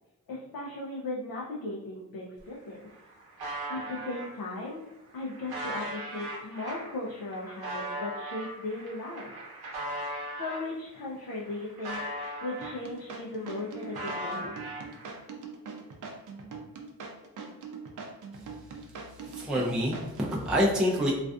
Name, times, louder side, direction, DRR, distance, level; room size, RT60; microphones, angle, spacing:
voice 1, 0.3-2.9 3.7-4.8 5.1-9.3 10.4-14.5, left 2 dB, 75° left, -3 dB, 0.5 m, -37 dB
sound 1, 2.4-2.5 2.7-4.3 4.9-10.7 11.1-13.1 13.4-15.2, right 1 dB, 85° right, 0.8 m, -39 dB
sound 2, 12.6-20.4, right 5 dB, 55° right, 0.5 m, -42 dB
voice 2, 19.2-21.1, equal, ahead, -4 dB, 0.4 m, -27 dB
2.4 x 2.3 x 2.3 m, 1.0 s
cardioid pair, 65°, 36 cm